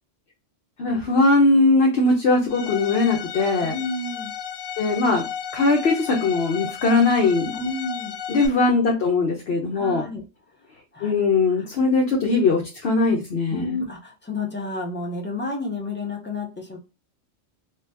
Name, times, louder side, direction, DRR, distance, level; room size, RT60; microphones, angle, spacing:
voice 1, 0.8-3.7 4.8-5.2 5.5-7.6 8.3-10.0 11.0-13.8, left 3 dB, 55° left, 0 dB, 0.9 m, -20 dB
Bowed string instrument, 2.5-8.5, left 8 dB, 90° left, 1.0 m, -34 dB
voice 2, 3.6-4.3 7.5-8.2 9.7-10.2 10.9-11.1 13.5-16.8, left 2 dB, 15° left, -1 dB, 0.5 m, -31 dB
2.8 x 2.3 x 3.3 m, 0.30 s
omnidirectional pair, 1.3 m